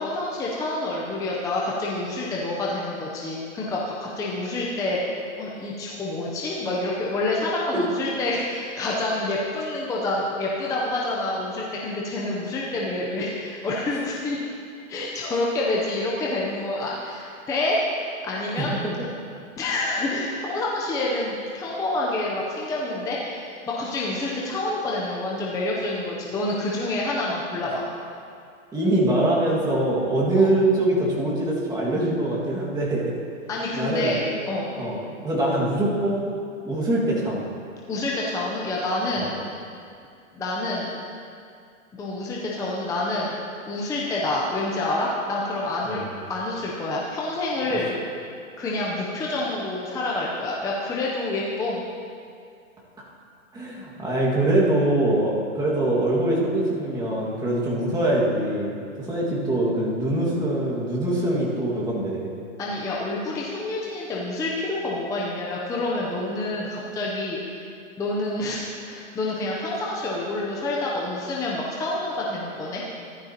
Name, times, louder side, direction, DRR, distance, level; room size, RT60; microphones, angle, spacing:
voice 1, 0.0-5.0 5.4-14.4 14.9-17.8 18.2-18.7 19.6-27.8 30.4-30.5 33.5-34.2 34.5-34.7 37.9-39.4 40.3-40.9 41.9-43.4 43.7-46.0 46.3-48.0 48.6-51.8 62.6-67.6 68.0-72.8, left 2 dB, 10° left, -4 dB, 0.6 m, -28 dB
voice 2, 28.7-33.1 33.7-34.1 34.8-36.3 36.6-37.5 39.1-39.3 45.9-46.0 47.7-47.8 53.5-62.3, right 1 dB, 10° right, -5 dB, 1.9 m, -23 dB
14.5 x 12.0 x 2.9 m, 2.4 s
hypercardioid pair, 145°, 41 cm